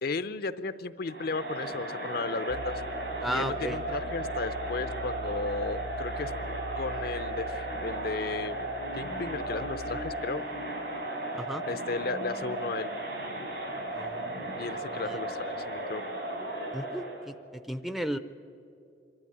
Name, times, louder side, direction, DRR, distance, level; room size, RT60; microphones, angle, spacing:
voice 1, 0.0-2.8 3.3-6.3 6.8-8.6 9.0-10.4 11.6-12.9 14.5-16.0, left 3 dB, 60° left, 13 dB, 0.6 m, -34 dB
Crowd, 1.1-17.2, right 1 dB, 80° right, 5.5 m, -35 dB
sound 1, 2.5-10.1, equal, 80° left, 0.9 m, -43 dB
voice 2, 3.2-3.8 11.3-11.6 13.9-14.4 14.9-15.2 16.7-17.3 17.7-18.2, equal, ahead, 12 dB, 0.5 m, -34 dB
25.5 x 12.0 x 9.8 m, 2.7 s
head